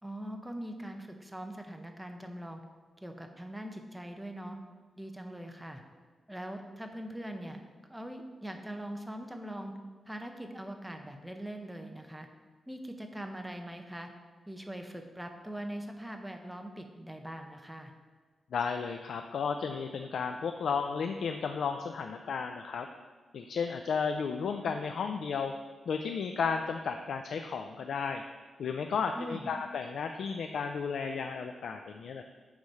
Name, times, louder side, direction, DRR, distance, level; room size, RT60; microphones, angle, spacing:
voice 1, 0.0-2.6 3.0-4.6 5.0-5.8 6.3-7.6 7.9-9.7 10.1-12.3 12.7-14.1 14.5-17.9 29.1-29.5, right 1 dB, 5° right, 5 dB, 0.7 m, -42 dB
voice 2, 18.5-22.9 23.3-25.5 25.9-28.2 28.6-32.2, left 5 dB, 75° left, 6 dB, 0.3 m, -33 dB
8.3 x 3.2 x 5.3 m, 1.5 s
wide cardioid pair, 110°, 0 cm